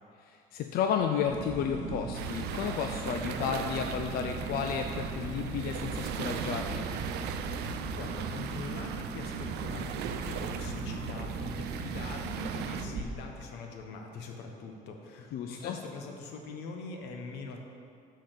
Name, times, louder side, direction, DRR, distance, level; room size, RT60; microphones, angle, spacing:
voice 1, 0.2-6.9 15.3-15.8, left 7 dB, 65° left, 4 dB, 0.4 m, -32 dB
sound 1, 1.3-13.0, right 4 dB, 45° right, 0.7 m, -38 dB
sound 2, 2.1-12.8, right 8 dB, 80° right, 0.4 m, -39 dB
voice 2, 7.6-17.6, left 4 dB, 90° left, 3 dB, 0.9 m, -43 dB
6.4 x 4.1 x 6.4 m, 2.3 s
cardioid pair, 110°, 17 cm